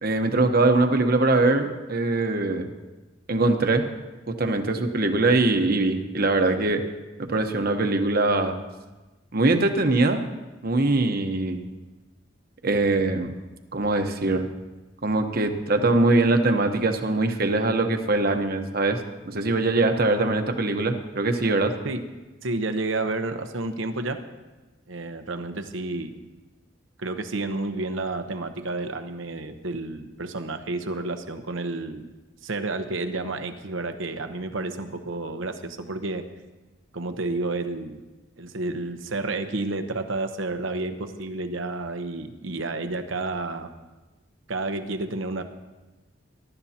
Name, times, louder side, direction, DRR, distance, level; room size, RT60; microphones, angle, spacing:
voice 1, 0.0-2.7 3.3-3.8 4.3-6.8 7.2-8.5 9.3-10.2 10.6-11.6 12.6-13.3 13.7-14.4 15.0-19.0 19.2-21.7, right 2 dB, 50° right, 6 dB, 1.0 m, -22 dB
voice 2, 22.4-24.2 24.9-26.1 27.0-32.1 32.4-36.2 36.9-38.0 38.4-43.7 44.5-45.4, right 2 dB, 85° right, 8 dB, 1.0 m, -30 dB
22.0 x 12.0 x 2.9 m, 1.1 s
head